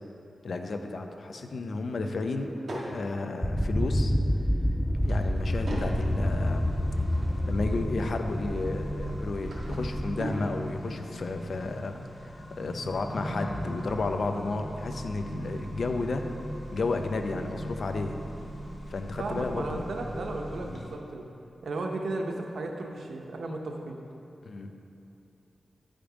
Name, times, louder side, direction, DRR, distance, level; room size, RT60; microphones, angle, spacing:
voice 1, 0.4-2.5 2.8-4.1 5.0-6.7 7.5-11.9 12.2-16.2 16.7-18.2 18.9-19.8 24.5-24.7, left 3 dB, 65° left, 6 dB, 0.6 m, -32 dB
Drawer open or close / Wood, 2.0-2.9 4.6-6.0 6.5-7.6 9.0-10.5, right 1 dB, 65° right, 1.9 m, -41 dB
sound 1, 3.4-10.2, equal, ahead, 0.3 m, -28 dB
Accelerating revving vroom, 5.5-20.9, equal, 40° left, 1.5 m, -39 dB
voice 2, 19.2-21.2 21.6-24.0, right 2 dB, 85° right, 2 dB, 0.8 m, -34 dB
10.0 x 5.2 x 5.1 m, 2.9 s
wide cardioid pair, 90°, 0 cm